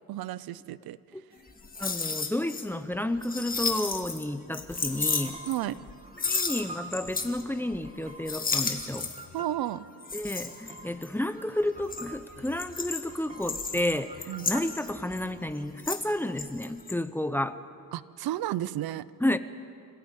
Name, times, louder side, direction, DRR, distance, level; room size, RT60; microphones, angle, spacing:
voice 1, 0.1-1.0 5.5-5.8 9.3-9.9 14.3-14.5 17.9-19.1, right 13 dB, 85° right, 18 dB, 0.7 m, -32 dB
sound 1, 1.5-2.6 2.9-4.2 4.5-5.9 6.2-7.4 7.7-8.0 8.3-9.3 10.0-11.2 11.7-16.1 16.4-16.9, left 4 dB, 25° left, 1.8 m, -33 dB
voice 2, 1.8-5.3 6.2-9.1 10.1-17.6 19.2-19.4, left 1 dB, 5° left, 11 dB, 0.6 m, -31 dB
sound 2, 4.7-15.5, right 3 dB, 20° right, 1.8 m, -48 dB
26.5 x 17.0 x 9.0 m, 2.4 s
cardioid pair, 160°, 36 cm